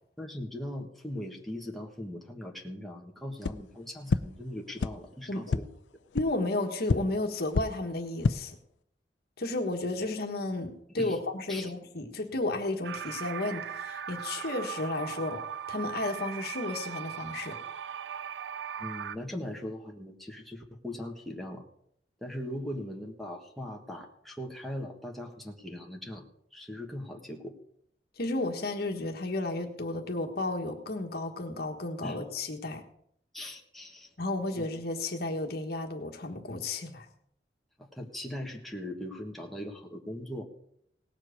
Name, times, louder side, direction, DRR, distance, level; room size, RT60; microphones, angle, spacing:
voice 1, 0.2-5.7 11.0-11.2 11.5-11.7 18.8-21.7 22.2-27.5 32.0-32.2 33.3-34.1 34.6-34.7 37.8-40.4, left 1 dB, ahead, 0 dB, 1.4 m, -40 dB
sound 1, 3.4-3.5 4.1-4.2 4.8-4.9 5.5-5.6 6.1-6.2 6.9-7.0 7.5-7.6 8.1-8.3, left 4 dB, 75° left, 0.5 m, -26 dB
voice 2, 6.1-8.6 9.4-15.4 15.7-17.6 28.2-32.8 34.2-37.1, left 2 dB, 60° left, 4 dB, 1.4 m, -33 dB
sound 2, 12.8-19.2, right 8 dB, 75° right, 0.4 m, -38 dB
18.0 x 7.5 x 5.1 m, 0.72 s
head